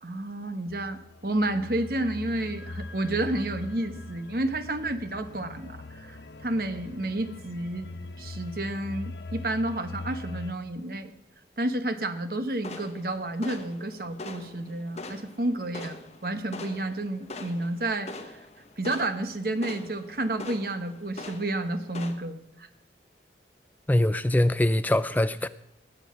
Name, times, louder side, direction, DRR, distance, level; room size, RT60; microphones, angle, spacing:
voice 1, 0.0-7.9 8.2-11.1 11.6-16.0 16.2-18.3 18.8-22.7, right 1 dB, 55° right, 1.1 m, -30 dB
sound 1, 0.7-10.5, left 2 dB, 75° left, 1.0 m, -41 dB
sound 2, 12.6-22.1, left 2 dB, 35° left, 1.2 m, -43 dB
voice 2, 23.9-25.5, left 1 dB, 10° left, 0.4 m, -23 dB
19.5 x 8.1 x 5.7 m
head